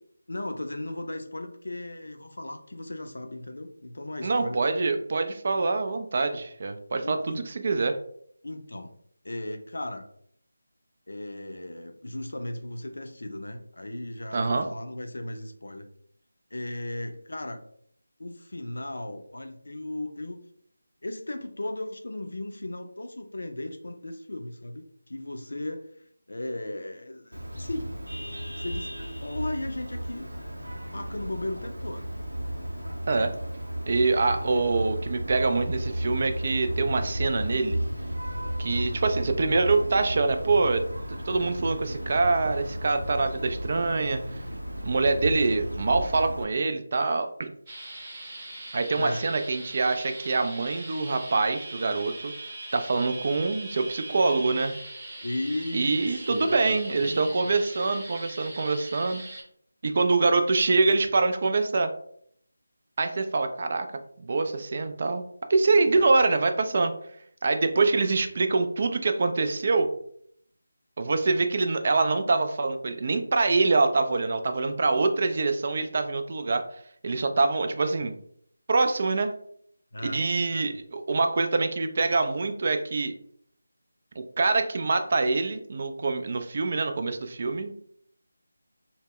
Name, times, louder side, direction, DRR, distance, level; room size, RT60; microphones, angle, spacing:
voice 1, 0.3-4.6 7.0-7.5 8.4-8.9 9.2-10.1 11.1-15.9 16.5-17.6 18.2-20.4 21.0-25.9 26.3-27.9 28.6-28.9 29.2-30.4 30.9-32.1 32.5-32.6 38.7-38.9 48.9-49.3 55.2-57.6 65.9-66.1 79.9-80.7, left 1 dB, 70° left, 6 dB, 0.4 m, -36 dB
voice 2, 4.2-8.0 14.3-14.7 33.1-33.3 33.9-37.8 38.6-40.8 41.3-44.2 44.8-47.5 48.7-52.3 52.7-54.7 55.7-59.2 59.8-61.9 63.0-63.9 64.2-65.2 65.5-66.9 67.4-69.9 71.0-76.6 77.0-78.1 78.7-79.3 80.1-83.1 84.2-87.7, right 3 dB, 40° right, 7 dB, 0.3 m, -25 dB
Vehicle horn car horn honking, 27.3-46.4, equal, 90° right, 0.6 m, -34 dB
sound 1, 47.7-59.4, right 1 dB, 25° right, 0.7 m, -41 dB
2.1 x 2.1 x 3.5 m, 0.66 s
figure-of-eight pair, 165°, 0 cm